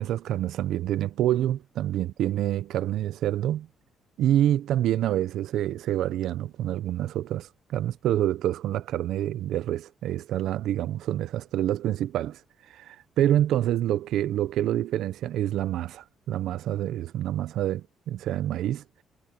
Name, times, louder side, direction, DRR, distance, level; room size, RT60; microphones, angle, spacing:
voice 1, 0.0-3.7 4.2-12.4 12.7-18.8, right 12 dB, 80° right, 0.6 m, -27 dB
cardioid pair, 90°, 0 cm